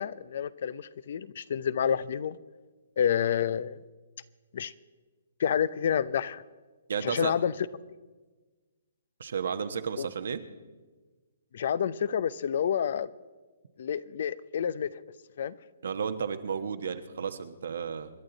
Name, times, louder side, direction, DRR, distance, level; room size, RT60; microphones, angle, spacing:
voice 1, 0.0-2.4 3.0-3.8 4.5-4.7 5.4-6.4 7.0-7.5 10.0-10.1 11.5-13.1 13.8-14.9 15.4-15.6, left 8 dB, 60° left, 18 dB, 0.6 m, -29 dB
voice 2, 6.9-7.3 9.2-10.4 15.8-18.1, right 6 dB, 70° right, 9 dB, 1.2 m, -32 dB
27.5 x 11.0 x 4.0 m, 1.3 s
hypercardioid pair, 155°, 0 cm